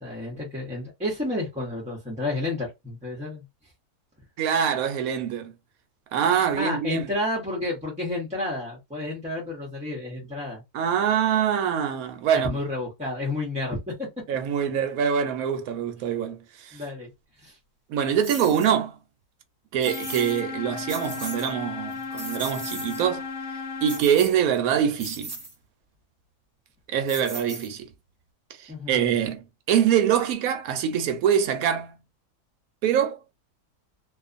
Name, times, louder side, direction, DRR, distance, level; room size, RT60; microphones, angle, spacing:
voice 1, 0.0-3.4 6.5-10.6 12.3-14.1 16.7-17.1 17.4-17.6 28.7-29.0, left 2 dB, 10° right, 0.4 m, -31 dB
voice 2, 4.4-5.5 6.1-7.1 10.7-12.6 14.3-16.8 17.9-19.0 19.7-23.3 23.8-25.4 26.9-27.9 28.6-32.0 32.8-33.2, right 8 dB, 75° right, 1.0 m, -24 dB
sound 1, 18.2-18.7 19.8-20.4 20.8-21.5 21.9-23.1 23.9-24.6 25.0-25.5 27.1-27.9, right 2 dB, 30° right, 1.0 m, -38 dB
sound 2, 19.9-24.0, left 5 dB, 70° left, 1.0 m, -34 dB
2.5 x 2.4 x 2.4 m
omnidirectional pair, 1.6 m